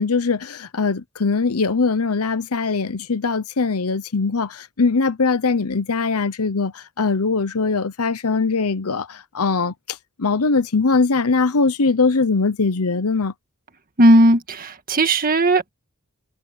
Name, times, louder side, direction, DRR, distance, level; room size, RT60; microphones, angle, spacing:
voice 1, 0.0-9.7 10.2-13.3, left 4 dB, 80° left, 0.9 m, -21 dB
voice 2, 14.0-15.7, right 1 dB, 40° right, 1.8 m, -16 dB
head